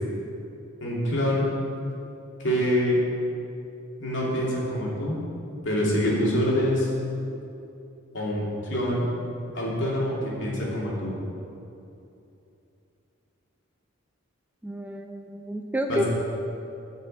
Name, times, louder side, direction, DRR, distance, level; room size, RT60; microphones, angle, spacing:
voice 1, 0.8-1.4 2.4-3.0 4.0-5.2 5.6-6.9 8.1-9.0 9.5-11.1 15.9-16.0, equal, 60° left, -5 dB, 2.7 m, -25 dB
voice 2, 14.6-16.0, equal, 10° right, 3 dB, 0.4 m, -30 dB
9.5 x 5.6 x 7.7 m, 2.8 s
head